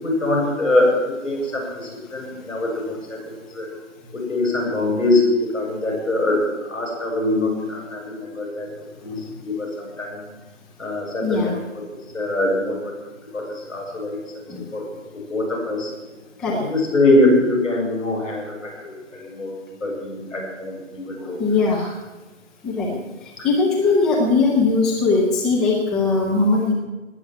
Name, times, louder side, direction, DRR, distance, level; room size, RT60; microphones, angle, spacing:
voice 1, 0.0-3.2 3.5-3.7 4.1-5.2 5.5-6.4 6.7-8.7 9.0-10.2 10.8-11.6 12.1-12.9 13.3-14.2 14.7-14.9 15.3-15.9 16.7-19.5 19.8-21.4, left 2 dB, 75° left, -1 dB, 7.8 m, -23 dB
voice 2, 11.2-11.5 14.5-14.6 16.4-16.6 21.2-21.8 22.6-23.0 23.4-26.7, left 3 dB, ahead, -4 dB, 0.5 m, -20 dB
19.5 x 7.9 x 9.4 m, 1.2 s
figure-of-eight pair, 140°, 38 cm